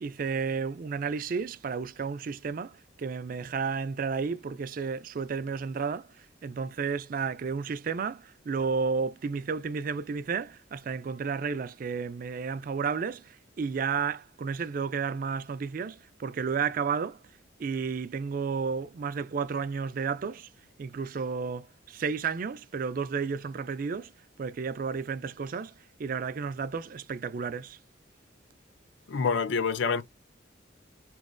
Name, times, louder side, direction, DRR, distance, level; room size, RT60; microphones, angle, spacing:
voice 1, 0.0-6.1 6.4-17.2 17.6-20.5 20.8-24.1 24.4-25.7 26.0-27.8, right 5 dB, 45° right, 0.3 m, -32 dB
voice 2, 29.1-30.0, left 5 dB, 65° left, 0.4 m, -27 dB
4.5 x 3.1 x 2.5 m
head